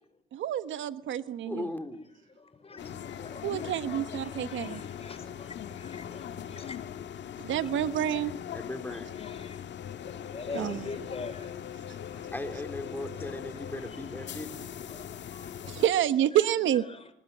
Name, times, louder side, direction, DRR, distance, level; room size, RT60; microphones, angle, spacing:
voice 1, 0.3-1.7 3.4-4.8 7.4-8.3 10.5-10.8 15.7-16.8, right 11 dB, 75° right, 12 dB, 1.3 m, -28 dB
voice 2, 1.5-2.1 8.5-9.1 10.5-10.7 12.3-14.5, left 1 dB, 10° left, 6 dB, 3.9 m, -38 dB
voice 3, 2.4-7.0 7.5-7.7 8.5-9.7 10.0-11.5 12.1-12.3 13.1-13.3 13.7-15.8 16.3-16.4 16.9-17.1, left 3 dB, 30° left, 11 dB, 5.0 m, -45 dB
sound 1, 2.8-15.9, left 9 dB, 65° left, 1.7 m, -40 dB
25.0 x 21.0 x 7.4 m, 0.63 s
cardioid pair, 90°, 20 cm